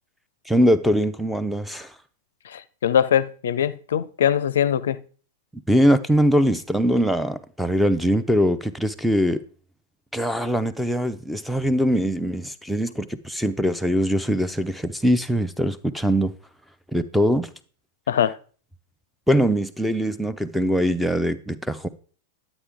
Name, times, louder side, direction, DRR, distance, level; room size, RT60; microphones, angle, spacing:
voice 1, 0.5-1.9 5.7-9.4 10.1-16.3 16.9-17.5 19.3-21.9, equal, ahead, 0.6 m, -22 dB
voice 2, 2.4-5.0 18.1-18.4, left 9 dB, 65° left, 0.5 m, -22 dB
11.0 x 8.1 x 3.5 m
figure-of-eight pair, 95°, 0 cm